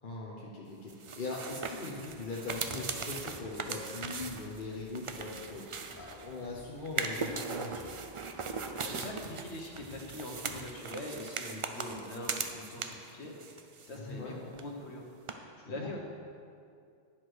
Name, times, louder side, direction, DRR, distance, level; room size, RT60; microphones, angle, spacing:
voice 1, 0.0-8.0 13.9-14.4 15.8-15.9, left 3 dB, 50° left, -4 dB, 1.1 m, -41 dB
sound 1, 0.9-6.4 6.8-13.1 13.4-14.3 14.5-14.6 15.3-15.4, right 5 dB, 50° right, 0.4 m, -39 dB
sound 2, 1.9-10.7, left 1 dB, 5° left, 1.8 m, -56 dB
voice 2, 8.8-16.0, left 1 dB, 75° left, 0 dB, 1.5 m, -43 dB
10.5 x 4.9 x 6.1 m, 2.4 s
omnidirectional pair, 1.1 m